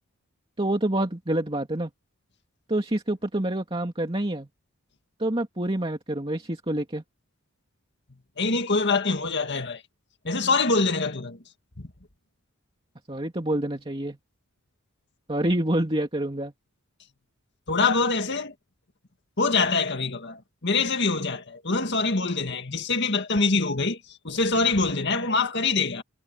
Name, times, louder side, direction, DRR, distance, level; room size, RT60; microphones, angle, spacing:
voice 1, 0.6-1.9 2.7-4.5 5.2-7.0 13.1-14.2 15.3-16.5, right 1 dB, 25° right, 2.5 m, -27 dB
voice 2, 8.4-9.8 10.2-11.4 11.8-11.9 17.7-18.5 19.4-26.0, left 3 dB, 55° left, 2.0 m, -24 dB
head